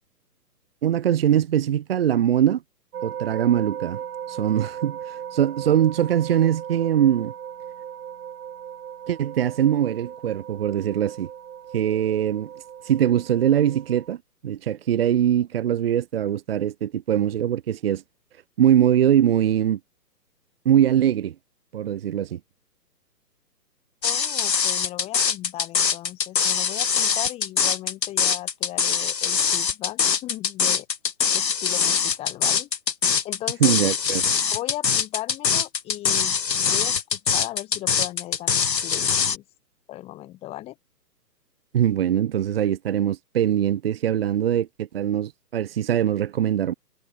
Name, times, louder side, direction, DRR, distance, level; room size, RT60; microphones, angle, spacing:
voice 1, 0.8-2.6 3.0-4.0 4.3-7.3 9.1-11.3 11.7-12.5 12.8-18.0 18.6-19.8 20.6-21.3 21.7-22.4 33.6-34.3 41.7-46.7, right 10 dB, 35° right, 0.9 m, -22 dB
sound 1, 2.9-14.1, right 9 dB, 60° right, 1.1 m, -37 dB
sound 2, 24.0-39.4, left 7 dB, 85° left, 1.4 m, -23 dB
voice 2, 24.0-30.9 31.3-32.7 33.2-33.7 34.5-39.4 39.9-40.7, left 15 dB, 10° left, 1.3 m, -37 dB
hypercardioid pair, 145°, 49 cm